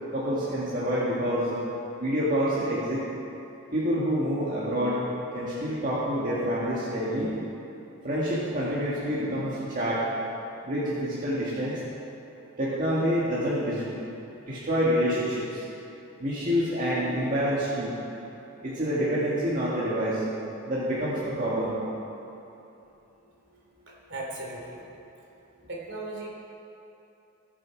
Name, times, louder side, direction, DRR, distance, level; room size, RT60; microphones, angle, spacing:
voice 1, 0.1-1.6 2.0-3.0 3.7-5.0 5.3-7.3 8.0-10.0 10.6-11.8 12.6-14.1 14.5-15.6 16.2-17.9 18.6-20.2 20.7-21.7, equal, 40° right, -9 dB, 2.0 m, -27 dB
voice 2, 23.9-24.8 25.7-26.3, right 2 dB, 55° right, -2 dB, 2.8 m, -37 dB
21.0 x 7.6 x 4.7 m, 2.9 s
head